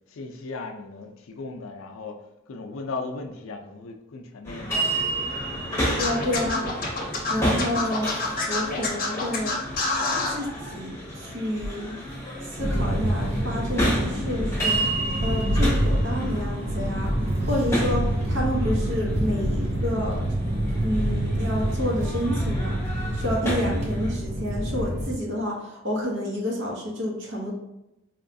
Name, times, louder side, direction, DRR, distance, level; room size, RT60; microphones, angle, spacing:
voice 1, 0.1-4.8, left 3 dB, 70° left, 4 dB, 0.4 m, -37 dB
sound 1, 4.4-24.1, right 1 dB, 15° left, 0.9 m, -32 dB
Scratching (performance technique), 6.0-10.4, left 3 dB, 40° left, 0.7 m, -27 dB
voice 2, 6.0-6.7 7.3-8.1 8.5-9.6 10.3-11.9 12.5-14.8 15.2-17.1 17.5-20.3 20.8-22.8 23.1-27.5, left 1 dB, 60° right, -2 dB, 0.9 m, -29 dB
sound 2, 12.6-25.1, right 1 dB, 30° right, 0.5 m, -26 dB
4.2 x 2.3 x 2.6 m, 0.91 s
head